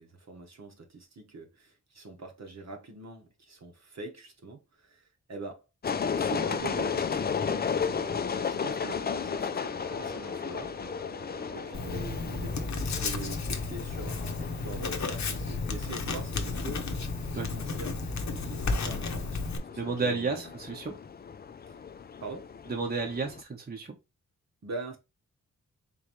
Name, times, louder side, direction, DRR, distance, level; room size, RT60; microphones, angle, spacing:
voice 1, 0.0-5.7 6.2-10.8 11.5-12.6 12.9-16.9 17.4-20.5 21.7-21.8 22.2-22.5 24.6-25.0, right 3 dB, 55° right, 1.2 m, -43 dB
sound 1, 5.8-23.4, left 6 dB, 30° left, 0.4 m, -35 dB
sound 2, 6.6-13.1, right 2 dB, 85° right, 2.2 m, -47 dB
Writing, 11.7-19.6, left 3 dB, 60° left, 0.7 m, -33 dB
voice 2, 19.7-20.9 22.7-24.0, right 4 dB, 30° right, 0.9 m, -32 dB
3.9 x 3.2 x 3.0 m
wide cardioid pair, 90°, 31 cm